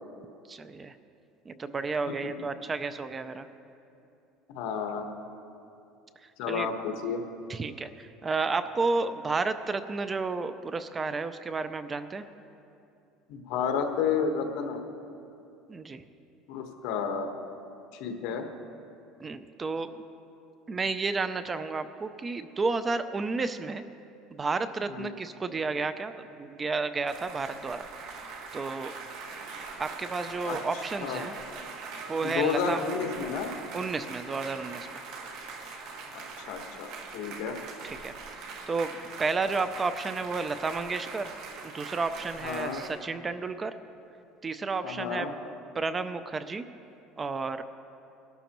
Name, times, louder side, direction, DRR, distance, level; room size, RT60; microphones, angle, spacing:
voice 1, 0.5-1.0 1.5-3.5 6.5-6.7 7.5-12.2 15.7-16.0 19.2-20.0 20.7-23.8 24.3-28.9 29.8-31.4 32.1-32.8 33.7-35.0 37.8-38.9 39.2-41.3 41.6-43.8 44.4-45.3 45.7-46.7 47.2-47.6, right 4 dB, 20° right, 12 dB, 0.4 m, -32 dB
voice 2, 4.5-5.1 6.4-7.2 13.3-14.8 16.5-17.3 17.9-18.5 24.9-25.1 30.4-30.6 31.0-31.3 32.2-33.6 36.1-37.6 42.4-42.8 44.8-45.3, left 6 dB, 70° left, 4 dB, 1.2 m, -31 dB
sound 1, 27.1-42.9, right 4 dB, 65° right, 1.6 m, -42 dB
19.0 x 12.5 x 3.0 m, 2.7 s
cardioid pair, 150°, 0 cm